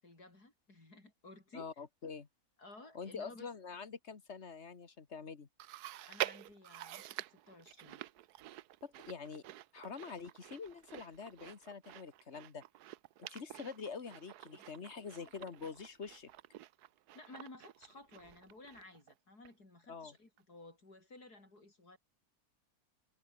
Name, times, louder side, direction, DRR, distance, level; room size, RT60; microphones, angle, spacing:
voice 1, 0.0-1.7 2.6-3.5 6.1-8.0 14.5-15.4 17.1-22.0, left 2 dB, 90° left, 6.7 m, -56 dB
voice 2, 1.5-2.3 2.9-5.5 8.8-9.4 9.7-12.6 13.2-16.3 19.9-20.1, left 5 dB, 45° left, 1.9 m, -46 dB
Chewing mastication, 5.6-19.1 19.4-19.5 20.4-20.5, right 14 dB, 85° right, 1.2 m, -47 dB
omnidirectional pair, 1.6 m